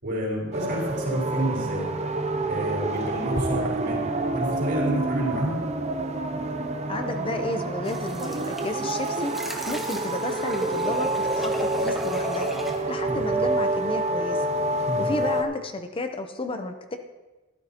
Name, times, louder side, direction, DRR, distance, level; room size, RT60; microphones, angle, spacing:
voice 1, 0.0-1.9 2.5-4.0 4.3-5.6 13.0-13.4 14.9-15.1, right 1 dB, 55° right, -4 dB, 4.1 m, -29 dB
sound 1, 0.5-15.4, right 2 dB, 30° right, 0.6 m, -28 dB
voice 2, 6.9-12.5 12.9-14.5 15.0-17.0, left 2 dB, 25° left, 7 dB, 0.6 m, -32 dB
sound 2, 7.8-12.8, equal, ahead, 1.0 m, -36 dB
14.0 x 12.0 x 2.8 m, 1.2 s
head